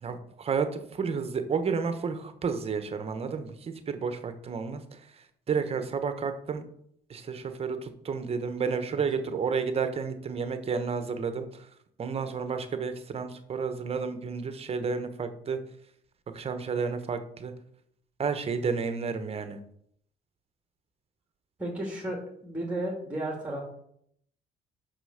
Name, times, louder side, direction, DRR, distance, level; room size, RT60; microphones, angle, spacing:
voice 1, 0.0-5.0 5.5-6.6 7.1-11.7 12.0-15.6 16.3-17.5 18.2-19.6, right 5 dB, 35° right, 9 dB, 1.1 m, -31 dB
voice 2, 21.6-23.6, right 1 dB, 5° right, -1 dB, 2.4 m, -33 dB
6.1 x 5.8 x 6.6 m, 0.69 s
cardioid pair, 110°, 17 cm